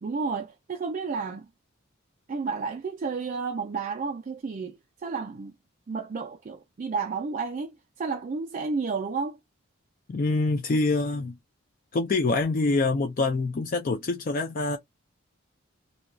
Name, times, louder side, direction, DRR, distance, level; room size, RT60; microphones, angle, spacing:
voice 1, 0.0-1.5 2.3-5.5 5.9-7.7 8.0-9.4, right 4 dB, 35° right, 0.3 m, -31 dB
voice 2, 10.1-11.3 11.9-14.8, left 3 dB, 40° left, 0.4 m, -25 dB
2.7 x 2.2 x 2.5 m
head